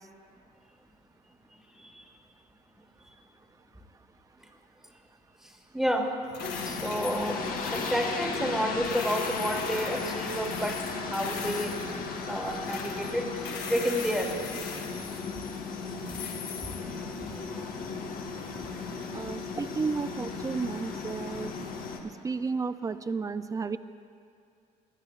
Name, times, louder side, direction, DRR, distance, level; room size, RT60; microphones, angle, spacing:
voice 1, 1.8-2.1 5.7-6.1 6.6-7.4 7.7-12.0 12.3-14.3 16.7-17.7, equal, ahead, 1 dB, 1.6 m, -31 dB
sound 1, 6.2-19.1, left 5 dB, 80° left, 1.9 m, -42 dB
sound 2, 6.4-22.0, left 4 dB, 55° left, 1.4 m, -36 dB
voice 2, 19.1-21.5 22.0-23.8, right 4 dB, 20° right, 12 dB, 0.4 m, -32 dB
28.0 x 11.5 x 2.4 m, 2.4 s
cardioid pair, 110°, 17 cm